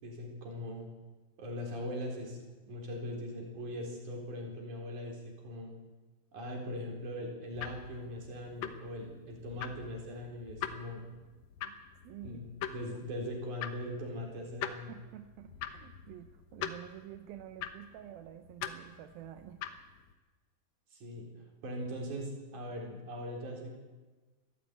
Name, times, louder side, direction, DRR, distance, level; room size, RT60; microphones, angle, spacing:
voice 1, 0.0-0.9 1.4-2.4 2.7-5.7 6.3-11.1 12.2-14.9 20.9-21.3 21.6-23.8, left 1 dB, 60° right, 0 dB, 5.4 m, -40 dB
sound 1, 7.5-20.1, left 9 dB, 65° left, 1.9 m, -44 dB
voice 2, 12.0-12.5 14.9-19.7, right 12 dB, 90° right, 8 dB, 2.7 m, -49 dB
22.0 x 14.0 x 8.8 m, 1.3 s
omnidirectional pair, 4.1 m